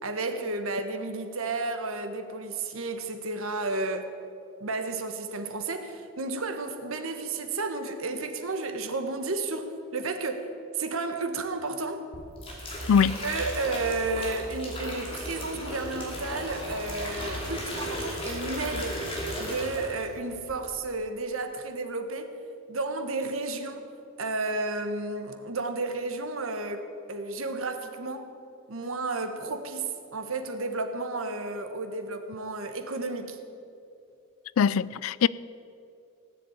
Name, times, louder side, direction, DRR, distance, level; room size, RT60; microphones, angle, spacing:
voice 1, 0.0-4.1 4.6-10.5 10.7-12.0 13.2-19.0 19.4-22.3 22.7-23.9 24.2-28.3 28.7-33.4, right 3 dB, 75° right, 1.3 m, -32 dB
sound 1, 12.1-20.1 20.4-20.8, equal, 25° left, 2.9 m, -35 dB
voice 2, 12.9-13.2 34.6-35.3, left 7 dB, 80° left, 0.4 m, -22 dB
17.5 x 7.7 x 8.7 m
head